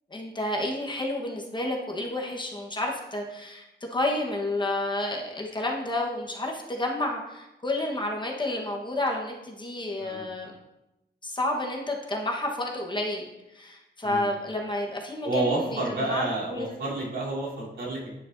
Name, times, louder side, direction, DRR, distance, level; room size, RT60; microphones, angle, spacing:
voice 1, 0.1-3.6 3.9-10.5 11.2-13.3 13.5-16.8, left 1 dB, 25° left, 0 dB, 1.1 m, -30 dB
voice 2, 15.2-18.1, right 2 dB, 90° right, -7 dB, 3.2 m, -29 dB
9.4 x 8.5 x 2.6 m, 0.93 s
wide cardioid pair, 175°, 19 cm